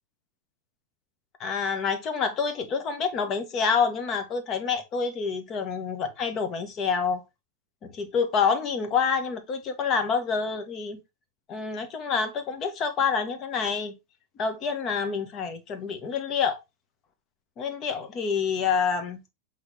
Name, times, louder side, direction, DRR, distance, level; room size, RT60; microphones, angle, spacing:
voice 1, 1.4-7.2 7.8-11.0 11.5-14.0 14.4-16.6 17.6-19.2, left 6 dB, 30° left, 1.6 m, -27 dB
7.9 x 4.0 x 3.4 m
figure-of-eight pair, 90°, 0 cm